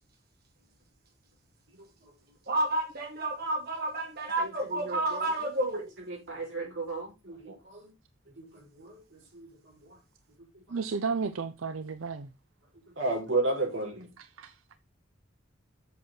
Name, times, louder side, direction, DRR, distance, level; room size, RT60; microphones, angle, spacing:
voice 1, 2.5-5.9, right 2 dB, 55° right, 2.7 m, -30 dB
voice 2, 4.4-5.0 6.1-7.9 8.4-10.0 10.7-10.8 13.0-14.1, right 2 dB, 70° right, 4.9 m, -34 dB
voice 3, 10.7-12.3 14.2-14.5, right 5 dB, 90° right, 0.6 m, -33 dB
8.1 x 6.6 x 4.3 m
head